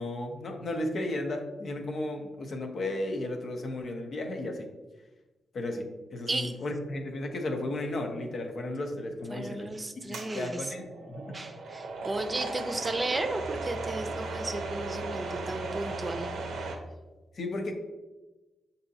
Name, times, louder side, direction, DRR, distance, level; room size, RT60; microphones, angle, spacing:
voice 1, 0.0-4.7 5.5-9.7 10.0-11.4 17.3-17.7, left 1 dB, 65° left, 3 dB, 0.7 m, -34 dB
voice 2, 9.3-10.7 11.3-16.3, right 2 dB, 35° right, 6 dB, 0.5 m, -34 dB
sound 1, 10.1-16.8, right 3 dB, 80° right, 0.6 m, -36 dB
6.7 x 2.7 x 2.7 m, 1.1 s
supercardioid pair, 45°, 0 cm